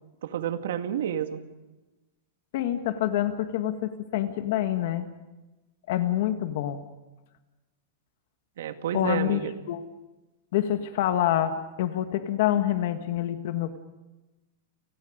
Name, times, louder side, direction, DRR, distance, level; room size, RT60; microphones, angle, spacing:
voice 1, 0.2-1.4 8.6-9.5, right 9 dB, 70° right, 8 dB, 2.1 m, -30 dB
voice 2, 2.5-5.0 5.9-6.8 8.9-9.8 10.5-13.8, left 12 dB, 50° left, 8 dB, 1.7 m, -27 dB
30.0 x 20.0 x 5.2 m, 1.1 s
supercardioid pair, 175°, 0 cm